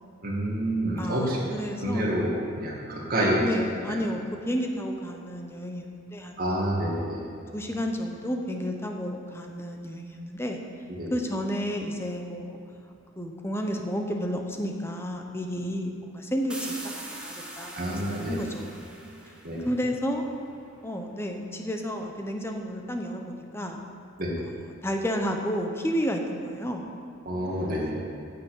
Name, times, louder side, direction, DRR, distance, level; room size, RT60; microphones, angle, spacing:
voice 1, 0.2-1.4 1.8-3.4 3.9-4.0 6.4-7.2 10.9-11.1 17.7-18.4 19.4-19.6 24.2-24.3 27.3-27.9, right 1 dB, 45° right, -3 dB, 2.2 m, -28 dB
voice 2, 1.0-2.2 3.3-6.4 7.5-10.6 11.1-12.6 13.2-16.8 17.2-18.8 19.6-20.2 20.8-23.8 24.4-26.9, equal, 10° left, 3 dB, 0.8 m, -31 dB
sound 1, 16.5-20.1, right 1 dB, 5° right, 1.1 m, -42 dB
9.4 x 6.8 x 8.3 m, 2.7 s
head